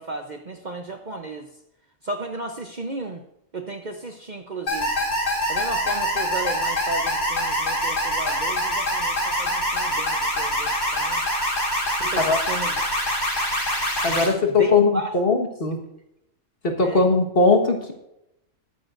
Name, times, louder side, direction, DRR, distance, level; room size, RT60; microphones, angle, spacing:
voice 1, 0.0-1.5 2.0-3.2 3.5-4.9 5.5-11.2 12.0-12.8 14.0-15.1 16.8-17.0, right 2 dB, 40° right, 4 dB, 0.8 m, -34 dB
sound 1, 4.7-14.3, equal, 65° left, 4.0 m, -25 dB
voice 2, 14.0-15.8 16.6-17.9, left 3 dB, 45° left, 3 dB, 1.7 m, -20 dB
20.0 x 9.1 x 2.6 m, 0.84 s
omnidirectional pair, 1.4 m